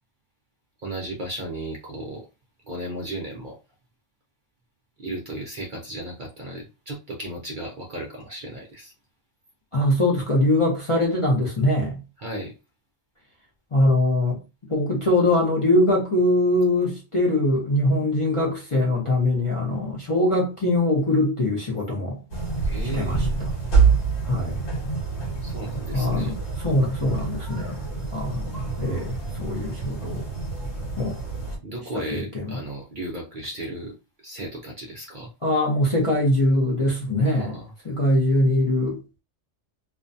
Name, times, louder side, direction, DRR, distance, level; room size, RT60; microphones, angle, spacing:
voice 1, 0.8-2.3 2.7-3.6 5.0-8.9 12.2-12.5 22.6-23.4 25.4-26.4 31.6-35.3 37.2-37.7, right 1 dB, 55° right, 0.6 m, -35 dB
voice 2, 9.7-12.0 13.7-14.4 14.7-22.2 22.9-23.5 24.2-24.6 25.9-30.3 31.0-31.2 31.9-32.5 35.4-37.6 37.8-39.0, left 1 dB, 35° left, 0.5 m, -22 dB
sound 1, 22.3-31.6, right 5 dB, 60° left, 1.1 m, -26 dB
2.4 x 2.2 x 2.5 m
omnidirectional pair, 1.3 m